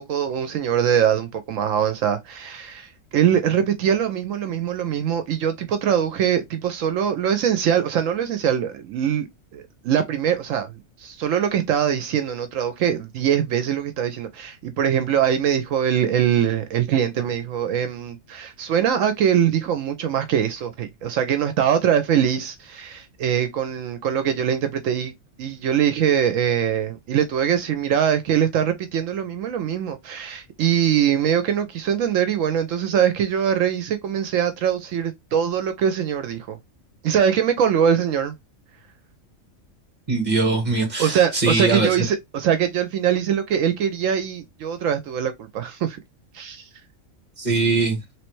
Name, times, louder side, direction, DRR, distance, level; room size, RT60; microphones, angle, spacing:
voice 1, 0.0-9.3 9.5-10.7 11.0-25.1 25.4-36.6 37.0-38.3 41.0-46.0 46.3-46.7, right 9 dB, 75° right, 0.9 m, -22 dB
voice 2, 40.1-42.0 47.4-48.0, right 3 dB, 35° right, 1.4 m, -21 dB
3.2 x 3.1 x 3.0 m
omnidirectional pair, 1.4 m